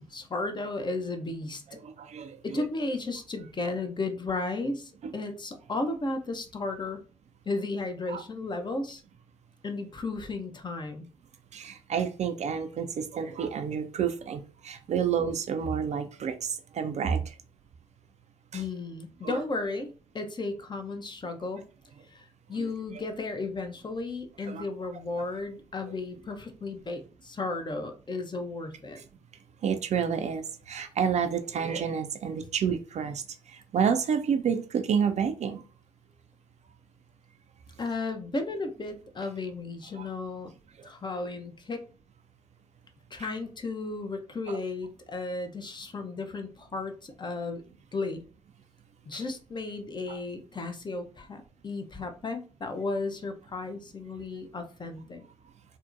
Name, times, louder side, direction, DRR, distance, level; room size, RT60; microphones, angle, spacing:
voice 1, 0.0-1.8 2.4-7.0 7.5-9.0 9.6-11.1 18.5-21.7 22.1-29.0 37.8-40.5 40.8-41.8 43.1-47.6 47.9-48.2 49.1-55.2, left 3 dB, 25° left, 0.6 m, -34 dB
voice 2, 1.7-2.6 5.0-5.1 8.1-8.2 11.5-17.4 18.5-18.6 19.2-19.4 22.6-22.7 24.5-24.6 25.2-25.3 25.9-26.0 29.0-29.1 29.6-35.6 39.9-40.1 40.8-40.9 44.5-44.6 49.1-49.2 50.1-50.2, right 7 dB, 45° right, 0.4 m, -30 dB
2.6 x 2.1 x 2.4 m
hypercardioid pair, 45°, 17 cm